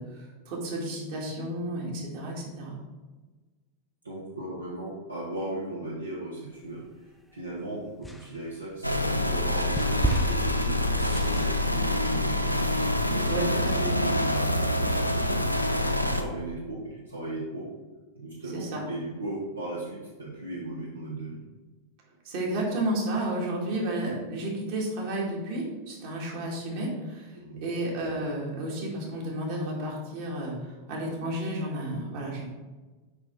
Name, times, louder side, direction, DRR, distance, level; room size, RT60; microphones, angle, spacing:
voice 1, 0.0-2.8 13.3-13.7 18.5-18.8 22.2-32.4, right 1 dB, 50° right, -3 dB, 2.1 m, -32 dB
voice 2, 4.0-6.8 7.3-12.6 13.1-15.5 15.8-17.7 18.2-21.4 27.3-27.7, right 2 dB, 80° right, -4 dB, 1.1 m, -37 dB
sound 1, 6.6-7.5 8.0-13.3, right 1 dB, ahead, 0.6 m, -34 dB
sound 2, 8.8-16.2, left 1 dB, 90° left, 0.5 m, -26 dB
6.1 x 5.4 x 3.8 m, 1.2 s
figure-of-eight pair, 90°, 0 cm